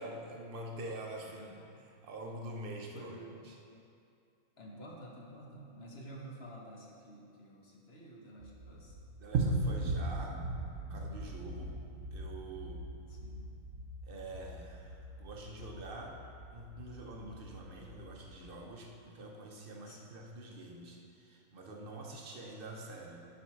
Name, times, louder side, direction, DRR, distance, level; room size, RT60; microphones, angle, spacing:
voice 1, 0.0-3.1 3.4-3.5 9.2-10.4 10.9-11.8 12.1-12.8 14.1-16.2 16.5-23.3, right 1 dB, 45° right, 0 dB, 0.9 m, -46 dB
voice 2, 1.2-1.8 2.9-3.6 4.6-9.0 13.1-13.4 19.8-20.0, right 1 dB, 50° left, -2 dB, 1.1 m, -51 dB
sound 1, 8.4-18.6, right 2 dB, 65° right, 1.2 m, -39 dB
7.9 x 4.7 x 5.8 m, 2.5 s
omnidirectional pair, 1.6 m